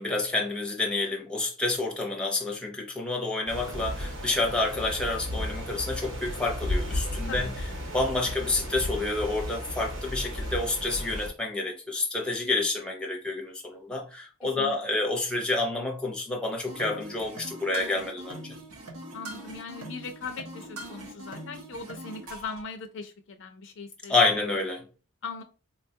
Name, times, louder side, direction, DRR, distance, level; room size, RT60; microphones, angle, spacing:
voice 1, 0.0-7.7 7.9-18.5 24.1-24.9, left 2 dB, 5° left, 0.5 m, -29 dB
sound 1, 3.5-11.3, left 1 dB, 60° right, 0.9 m, -34 dB
sound 2, 16.7-22.6, right 1 dB, 90° right, 0.8 m, -42 dB
voice 2, 19.1-24.2 25.2-25.4, left 4 dB, 60° left, 0.4 m, -39 dB
3.9 x 2.2 x 2.7 m
head